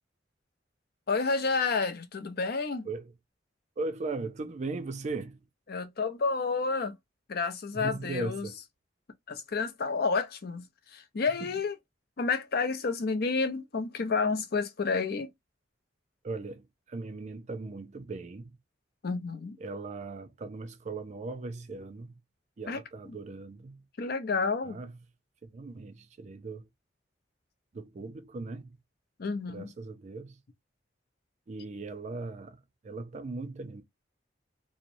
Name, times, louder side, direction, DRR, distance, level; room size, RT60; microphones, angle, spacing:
voice 1, 1.1-2.9 5.7-7.0 7.3-8.5 9.3-11.7 12.2-15.3 19.0-19.6 22.7-22.8 24.0-24.8 29.2-29.7, left 4 dB, 60° left, 0.5 m, -30 dB
voice 2, 3.8-5.4 7.7-8.6 11.4-11.5 16.2-18.5 19.6-22.1 22.6-23.8 24.6-24.9 25.4-26.7 27.7-28.8 29.5-30.4 31.5-33.8, right 3 dB, 40° right, 0.4 m, -38 dB
2.9 x 2.0 x 2.5 m
head